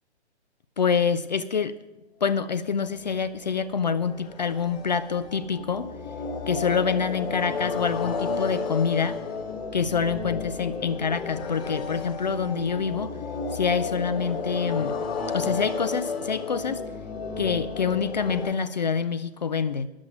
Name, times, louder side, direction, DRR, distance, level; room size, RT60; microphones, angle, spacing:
voice 1, 0.8-1.8 2.2-5.9 6.5-9.2 9.7-13.2 13.5-15.0 15.3-16.8 17.4-19.9, left 6 dB, 40° left, 12 dB, 0.5 m, -26 dB
sound 1, 3.0-18.5, left 4 dB, 15° left, 1.6 m, -32 dB
10.5 x 7.5 x 9.0 m, 1.0 s
figure-of-eight pair, 130°, 34 cm